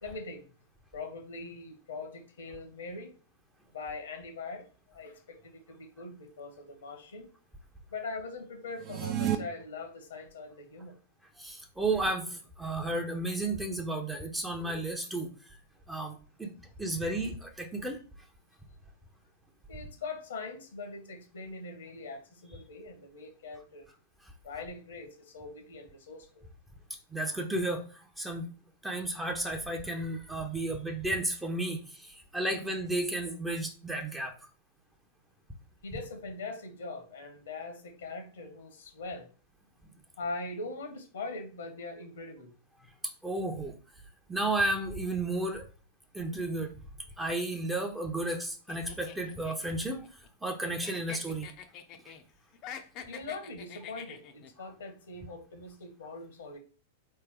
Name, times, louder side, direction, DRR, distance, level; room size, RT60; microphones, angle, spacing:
voice 1, 0.0-0.5 0.9-3.1 3.7-7.3 7.9-11.0 19.7-23.9 24.4-26.4 35.8-39.3 40.2-42.5 53.1-56.6, left 3 dB, 75° left, 6 dB, 1.2 m, -42 dB
sound 1, 8.7-9.4, right 11 dB, 40° right, 0.6 m, -30 dB
voice 2, 11.4-15.6 15.9-16.5 16.8-18.0 26.9-28.5 28.8-34.3 43.0-43.7 44.3-45.7 46.1-46.7 47.2-51.5 52.0-52.1, right 2 dB, 10° right, 3 dB, 0.8 m, -33 dB
sound 2, 48.7-50.6 50.8-52.2 52.5-54.5, left 8 dB, 40° left, 0.7 m, -45 dB
4.1 x 3.3 x 3.7 m, 0.38 s
hypercardioid pair, 100°, 0 cm